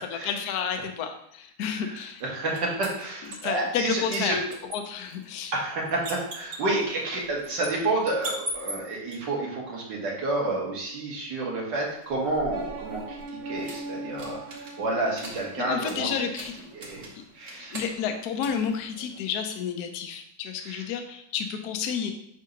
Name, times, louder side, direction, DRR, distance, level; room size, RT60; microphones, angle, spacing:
voice 1, 0.0-2.2 3.4-4.3 4.7-5.5 15.6-16.5 17.6-22.1, left 7 dB, 65° left, 5 dB, 1.0 m, -31 dB
voice 2, 1.7-4.4 5.5-13.2 13.5-14.4 14.8-16.2 16.7-17.1 17.3-17.8 20.6-20.8, right 2 dB, 60° right, -3 dB, 2.1 m, -29 dB
sound 1, 2.0-3.8 4.1-9.2 12.0-19.5, right 1 dB, 45° right, 1.3 m, -42 dB
sound 2, 12.5-16.4, right 2 dB, 80° right, 1.6 m, -40 dB
7.5 x 2.7 x 5.2 m, 0.73 s
omnidirectional pair, 2.2 m